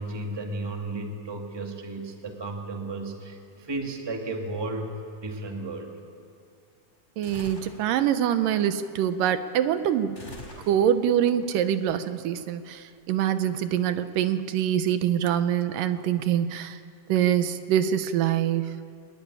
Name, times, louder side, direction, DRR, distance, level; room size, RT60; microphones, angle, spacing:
voice 1, 0.0-5.9, right 2 dB, 10° right, 2 dB, 1.6 m, -34 dB
sound 1, 7.2-7.8 10.1-11.1, left 2 dB, 15° left, 4.3 m, -43 dB
voice 2, 7.2-10.2 10.7-16.8 17.1-18.8, right 10 dB, 80° right, 11 dB, 2.5 m, -24 dB
23.5 x 20.5 x 9.9 m, 2.4 s
omnidirectional pair, 3.9 m